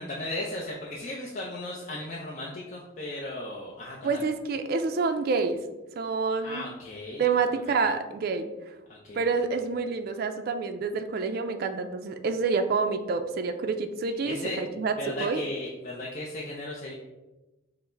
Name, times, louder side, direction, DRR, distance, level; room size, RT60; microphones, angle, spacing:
voice 1, 0.0-4.2 6.4-7.3 7.7-7.8 8.9-9.2 14.2-14.6 15.0-16.9, left 1 dB, 40° left, -3 dB, 0.5 m, -36 dB
voice 2, 4.0-5.6 6.0-6.6 7.2-8.5 9.1-15.4, right 4 dB, 50° right, 7 dB, 0.3 m, -28 dB
5.4 x 2.0 x 4.4 m, 1.1 s
head